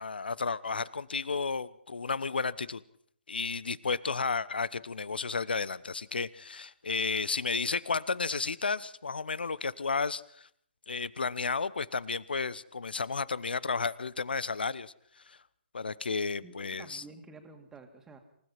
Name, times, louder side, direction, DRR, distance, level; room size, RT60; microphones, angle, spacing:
voice 1, 0.0-2.8 3.3-10.5 10.9-15.4 15.7-17.0, left 4 dB, 65° left, 20 dB, 1.0 m, -32 dB
voice 2, 16.4-18.2, right 3 dB, 10° right, 4 dB, 2.5 m, -51 dB
27.5 x 16.5 x 5.8 m, 0.65 s
figure-of-eight pair, 135°, 6 cm